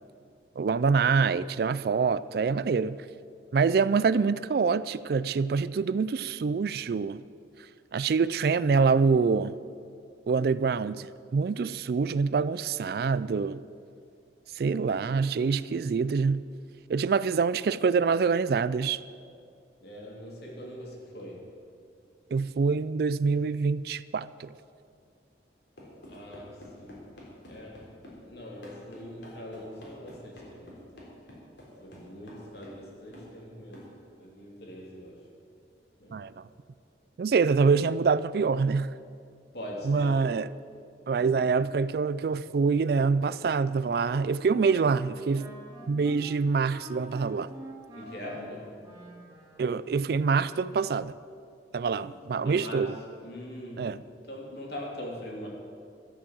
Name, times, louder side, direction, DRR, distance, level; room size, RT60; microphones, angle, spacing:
voice 1, 0.6-3.0 3.5-7.2 7.9-9.6 10.3-13.6 14.6-16.4 16.9-19.0 22.3-24.5 36.1-36.4 37.2-38.9 39.8-40.5 41.1-45.5 45.9-47.5 49.6-51.1 51.7-53.0 53.8-54.0, right 5 dB, 55° right, 0.3 m, -25 dB
voice 2, 19.8-21.6 26.1-27.1 27.5-27.9 28.2-30.8 31.8-35.3 36.0-36.2 39.5-40.2 41.1-41.5 47.9-48.8 52.0-52.1 52.4-52.9 53.2-55.5, left 1 dB, 60° left, 2.8 m, -42 dB
sound 1, 25.8-28.2 28.6-32.9 33.1-33.3 33.7-33.9, left 1 dB, 80° left, 3.8 m, -49 dB
Wind instrument woodwind instrument, 44.3-49.7, equal, 20° right, 2.2 m, -47 dB
13.0 x 8.3 x 7.5 m
head